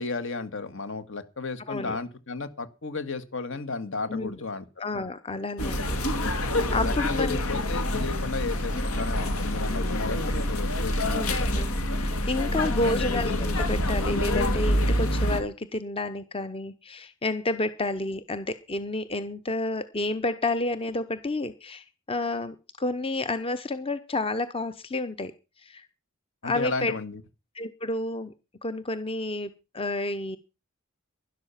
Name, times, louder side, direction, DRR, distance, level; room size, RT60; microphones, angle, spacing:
voice 1, 0.0-4.6 6.8-11.6 12.7-13.0 26.4-27.2, left 4 dB, 65° left, 10 dB, 1.8 m, -34 dB
voice 2, 1.7-2.0 4.1-4.4 4.8-7.6 11.1-11.7 12.0-25.3 25.6-25.9 26.4-26.9 27.5-28.3 28.6-30.4, left 2 dB, 25° left, 12 dB, 0.8 m, -30 dB
sound 1, 5.6-15.4, left 1 dB, 90° left, 2.3 m, -26 dB
12.0 x 11.5 x 5.8 m, 0.30 s
head